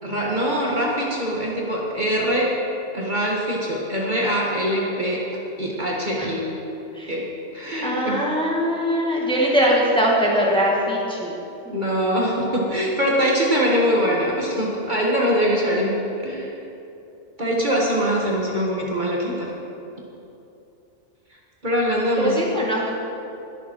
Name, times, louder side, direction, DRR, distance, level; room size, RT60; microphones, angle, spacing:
voice 1, 0.0-2.5 2.9-5.2 5.6-6.5 7.1-7.2 7.5-8.2 11.7-16.0 16.2-16.5 17.4-19.5 21.6-22.4, equal, 40° right, -3 dB, 1.7 m, -23 dB
voice 2, 7.8-11.3 22.1-22.9, equal, 5° left, -4 dB, 1.8 m, -21 dB
21.0 x 7.2 x 4.5 m, 2.8 s
omnidirectional pair, 1.3 m